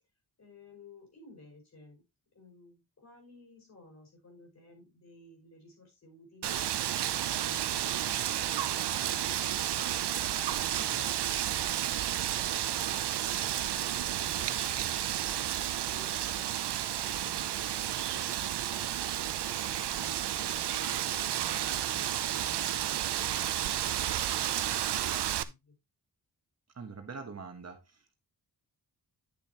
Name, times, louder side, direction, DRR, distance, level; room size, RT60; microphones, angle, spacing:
voice 1, 0.4-2.0 2.3-6.7 7.2-9.8 10.3-16.5 17.0-18.9 19.2-24.1 24.4-25.8, left 2 dB, 40° left, 5.6 m, -55 dB
Wind, 6.4-25.4, right 11 dB, 85° right, 0.7 m, -32 dB
voice 2, 10.8-11.1 26.7-28.2, right 5 dB, 40° right, 1.4 m, -44 dB
10.5 x 6.9 x 3.0 m
wide cardioid pair, 170°, 40 cm